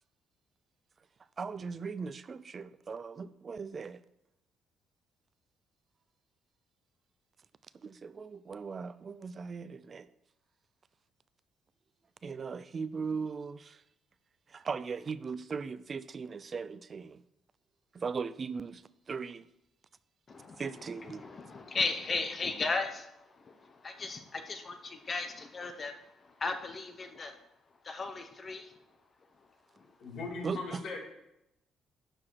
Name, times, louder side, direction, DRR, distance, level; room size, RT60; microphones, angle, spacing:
voice 1, 1.4-4.0 7.8-10.1 12.2-13.8 14.5-17.2 17.9-19.4 20.6-21.2 30.4-30.8, right 5 dB, 25° right, 0.3 m, -38 dB
voice 2, 20.3-27.4 27.8-28.7 29.7-29.9, left 3 dB, 25° left, 0.8 m, -36 dB
voice 3, 30.0-31.0, left 3 dB, 50° left, 2.7 m, -39 dB
12.0 x 4.8 x 6.2 m
cardioid pair, 170°, 0 cm